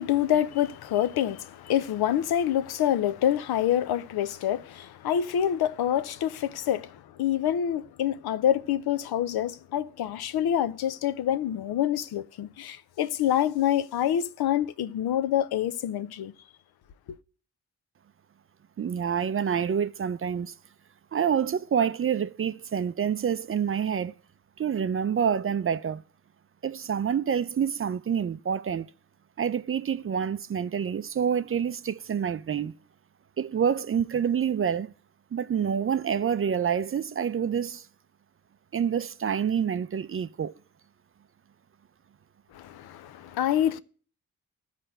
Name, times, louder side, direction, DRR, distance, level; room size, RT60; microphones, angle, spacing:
voice 1, 0.0-16.3 42.5-43.8, left 10 dB, 70° left, 0.6 m, -26 dB
voice 2, 18.8-20.5 21.1-24.1 24.6-26.0 26.6-28.9 29.4-32.7 33.4-34.9 35.3-37.9 38.7-40.6, right 7 dB, 35° right, 0.5 m, -27 dB
12.0 x 4.4 x 7.9 m
supercardioid pair, 45°, 40 cm